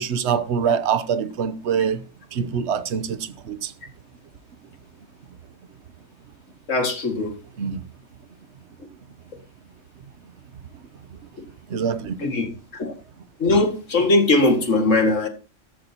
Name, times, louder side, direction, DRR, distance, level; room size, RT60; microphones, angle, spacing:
voice 1, 0.0-2.0 2.3-3.7 7.6-7.8 11.7-12.2, right 7 dB, 65° right, 1.1 m, -24 dB
voice 2, 6.7-7.3 12.2-12.9 13.4-15.3, left 2 dB, 90° left, 2.4 m, -20 dB
14.0 x 12.5 x 2.9 m
omnidirectional pair, 1.3 m